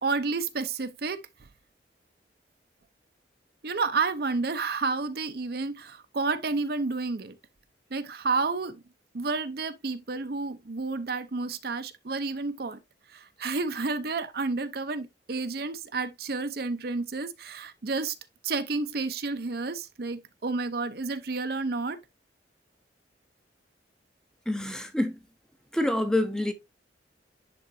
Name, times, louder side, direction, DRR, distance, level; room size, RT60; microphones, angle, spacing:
voice 1, 0.0-1.2 3.6-7.4 7.9-8.8 9.1-12.8 13.1-18.1 18.4-22.0, right 4 dB, 55° right, 0.6 m, -30 dB
voice 2, 24.5-25.2 25.7-26.5, left 1 dB, 5° left, 0.6 m, -26 dB
10.5 x 3.8 x 2.6 m
head